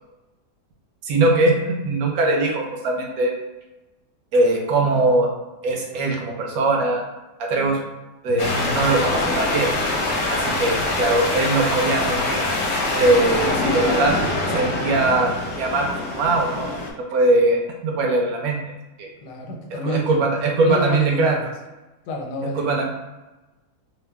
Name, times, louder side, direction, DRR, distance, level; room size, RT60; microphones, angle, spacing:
voice 1, 1.0-3.3 4.3-5.3 5.6-7.0 7.4-7.8 8.2-9.7 10.3-12.4 12.9-14.2 14.5-16.7 17.0-18.6 19.0-19.1 19.8-21.3 22.6-22.8, right 2 dB, 70° right, 1 dB, 0.9 m, -21 dB
sound 1, 8.4-16.9, left 2 dB, 65° left, 0.8 m, -24 dB
voice 2, 19.2-21.5 22.1-22.8, left 1 dB, 85° left, 0 dB, 1.2 m, -29 dB
2.8 x 2.0 x 3.4 m, 1.1 s
omnidirectional pair, 1.8 m